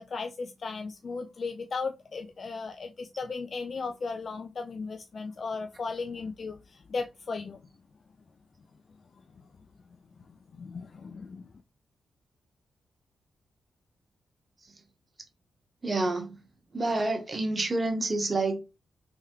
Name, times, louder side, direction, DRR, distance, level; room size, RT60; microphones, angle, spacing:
voice 1, 0.0-7.7 10.3-11.5, left 4 dB, 55° left, 0.4 m, -36 dB
voice 2, 15.8-16.4 16.7-18.6, right 2 dB, 35° right, 1.2 m, -28 dB
3.5 x 3.0 x 3.0 m
supercardioid pair, 50°, 0 cm